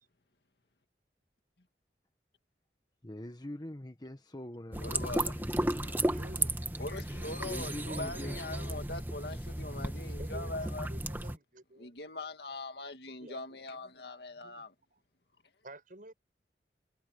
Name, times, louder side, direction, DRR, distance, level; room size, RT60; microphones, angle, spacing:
voice 1, 3.0-6.5 7.4-8.4, left 1 dB, 25° left, 1.4 m, -44 dB
sound 1, 4.7-11.4, right 1 dB, 10° right, 1.4 m, -34 dB
voice 2, 4.8-5.3 6.8-7.7 8.0-10.9 11.8-14.7, left 2 dB, 65° left, 2.2 m, -41 dB
voice 3, 6.0-6.5 7.9-8.9 9.7-9.8 10.2-12.0 12.3-13.6 14.3-15.0 15.6-16.1, right 1 dB, 50° right, 7.9 m, -51 dB
head